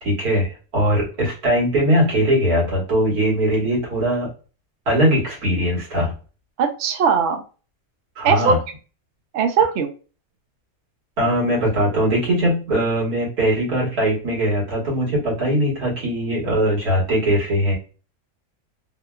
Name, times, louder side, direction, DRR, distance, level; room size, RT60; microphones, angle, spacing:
voice 1, 0.0-4.3 4.9-6.1 8.2-8.6 11.2-17.7, equal, 85° right, -4 dB, 2.0 m, -20 dB
voice 2, 6.6-7.4 8.2-8.6 9.3-9.9, right 6 dB, 65° right, 5 dB, 0.7 m, -19 dB
3.6 x 2.3 x 2.2 m, 0.35 s
omnidirectional pair, 1.6 m